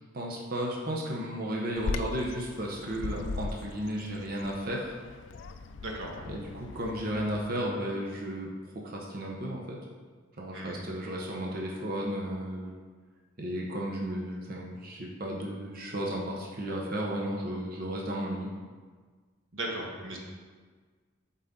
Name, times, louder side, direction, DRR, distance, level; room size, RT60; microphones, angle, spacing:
voice 1, 0.1-5.0 6.2-8.5 8.7-9.8 10.4-12.8 13.4-18.5, equal, 50° right, -2 dB, 0.9 m, -34 dB
Bird vocalization bird call bird song, 1.8-7.4, left 3 dB, 65° left, 0.3 m, -39 dB
voice 2, 5.8-6.3 10.5-10.8 19.5-20.2, right 1 dB, 80° right, -1 dB, 1.2 m, -37 dB
7.8 x 4.1 x 3.7 m, 1.5 s
head